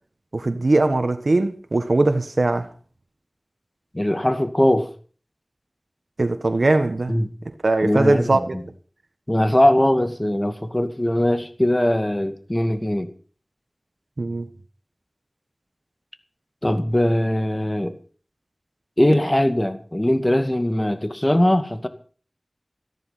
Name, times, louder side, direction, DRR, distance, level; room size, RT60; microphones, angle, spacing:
voice 1, 0.3-2.7 6.2-7.1 7.6-8.6 14.2-14.5, right 2 dB, 80° right, 1.4 m, -20 dB
voice 2, 3.9-4.9 7.1-7.3 7.8-8.6 9.3-13.1 16.6-17.9 19.0-21.9, left 1 dB, 25° left, 2.3 m, -20 dB
14.5 x 13.5 x 5.9 m
wide cardioid pair, 40°, 0 cm